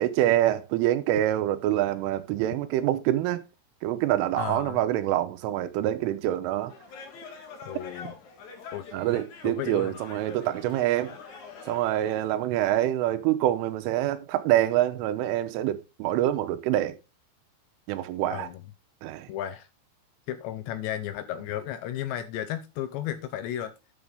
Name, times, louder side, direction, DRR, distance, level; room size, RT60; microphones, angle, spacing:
voice 1, 0.0-3.4 3.8-6.7 8.9-11.1 11.7-17.0 17.9-18.5 19.0-19.3, right 13 dB, 90° right, 3.4 m, -26 dB
voice 2, 4.4-4.8 7.6-8.1 8.7-8.9 9.4-9.9 18.3-18.6 19.3-19.7 20.3-23.7, left 11 dB, 75° left, 2.7 m, -34 dB
sound 1, 6.7-12.3, left 4 dB, 55° left, 2.4 m, -45 dB
11.0 x 7.1 x 3.8 m
omnidirectional pair, 5.7 m